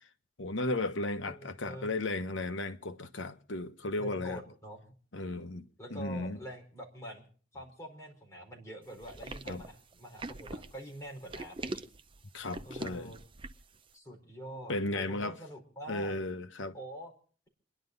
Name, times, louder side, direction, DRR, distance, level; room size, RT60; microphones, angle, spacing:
voice 1, 0.4-4.4 5.1-5.6 5.9-6.4 9.5-9.6 12.3-13.1 14.7-15.3 15.9-16.8, left 2 dB, 75° left, 1.1 m, -35 dB
voice 2, 1.2-1.9 4.0-4.9 5.8-7.2 7.5-11.8 12.6-13.2 13.9-16.2 16.7-17.1, equal, 15° left, 4.6 m, -45 dB
sound 1, 9.0-13.8, right 2 dB, 25° right, 0.6 m, -42 dB
29.0 x 11.0 x 4.0 m
head